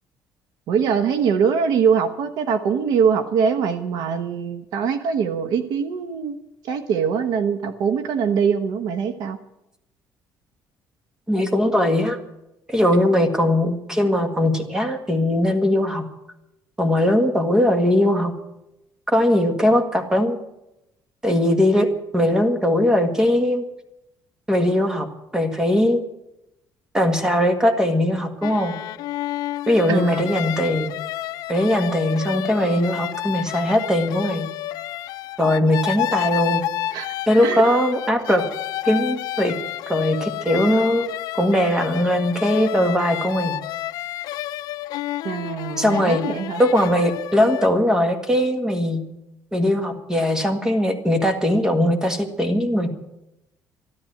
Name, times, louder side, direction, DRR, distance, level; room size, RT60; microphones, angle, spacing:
voice 1, 0.7-6.4 6.6-9.4 29.9-30.2 36.9-37.1 37.4-37.6 45.2-46.6, right 6 dB, 70° right, 9 dB, 1.1 m, -22 dB
voice 2, 11.3-12.2 12.7-16.0 16.8-18.3 19.1-20.4 21.2-23.6 24.5-25.1 25.3-26.0 26.9-28.7 29.7-30.9 31.5-34.5 35.4-36.6 37.3-38.4 38.8-39.5 39.9-41.1 41.3-43.6 45.8-46.2 46.6-49.0 49.5-52.9, left 1 dB, 10° right, 7 dB, 1.7 m, -20 dB
sound 1, 28.4-47.7, left 14 dB, 65° left, 0.4 m, -30 dB
13.0 x 13.0 x 7.8 m, 0.89 s
cardioid pair, 160°, 7 cm